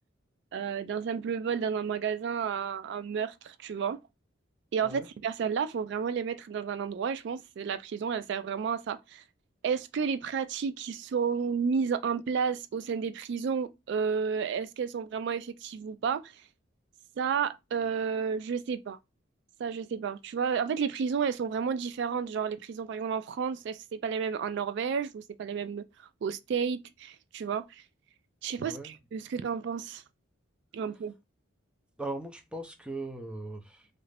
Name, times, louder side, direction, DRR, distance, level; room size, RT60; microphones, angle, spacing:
voice 1, 0.5-4.0 4.7-9.2 9.6-16.4 17.2-19.0 19.6-27.8 28.4-30.0 30.7-31.1, right 6 dB, 60° right, 0.3 m, -31 dB
voice 2, 28.6-28.9 32.0-33.9, right 2 dB, 5° right, 0.5 m, -39 dB
3.2 x 2.5 x 3.2 m
head